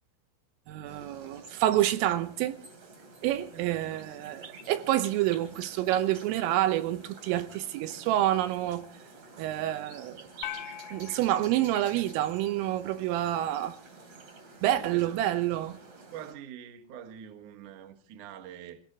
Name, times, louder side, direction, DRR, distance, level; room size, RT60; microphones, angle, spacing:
voice 1, 0.7-2.6 3.2-8.9 9.4-10.3 10.9-13.8 14.6-15.8, right 13 dB, 80° right, 3.6 m, -28 dB
sound 1, 0.8-16.3, right 4 dB, 40° right, 4.0 m, -50 dB
voice 2, 3.5-3.9 14.7-15.2 16.1-18.8, right 9 dB, 65° right, 2.1 m, -45 dB
sound 2, 10.4-12.9, left 12 dB, 85° left, 3.9 m, -43 dB
27.0 x 17.0 x 3.0 m
omnidirectional pair, 5.8 m